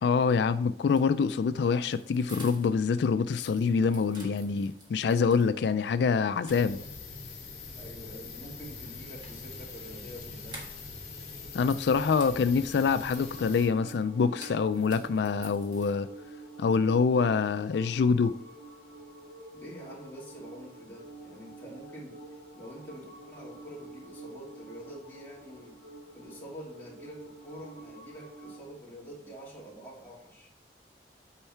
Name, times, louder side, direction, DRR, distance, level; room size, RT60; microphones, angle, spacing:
voice 1, 0.0-6.8 11.5-16.1 16.6-18.3, left 5 dB, 80° left, 0.3 m, -25 dB
sound 1, 0.8-2.9 3.2-5.5 5.9-6.0 6.3-7.2 8.8-11.1 11.4-16.3, right 2 dB, 25° right, 1.4 m, -51 dB
sound 2, 6.5-13.7, left 4 dB, 40° left, 2.1 m, -43 dB
voice 2, 7.8-10.7 19.5-25.7 26.1-30.5, equal, 10° left, 2.5 m, -46 dB
sound 3, 11.1-28.7, right 2 dB, 65° right, 2.4 m, -49 dB
8.8 x 4.6 x 4.4 m
head